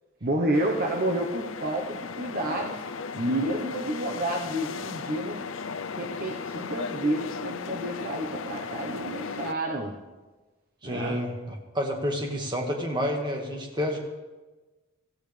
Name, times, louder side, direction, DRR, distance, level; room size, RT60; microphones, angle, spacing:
voice 1, 0.2-2.8 3.2-5.4 6.0-9.9 10.8-11.2, right 1 dB, 45° right, 0 dB, 1.0 m, -29 dB
sound 1, 0.5-9.5, left 5 dB, 65° left, 0.5 m, -36 dB
voice 2, 10.8-14.0, equal, 20° right, 1 dB, 1.7 m, -29 dB
17.0 x 14.5 x 3.3 m, 1.2 s
head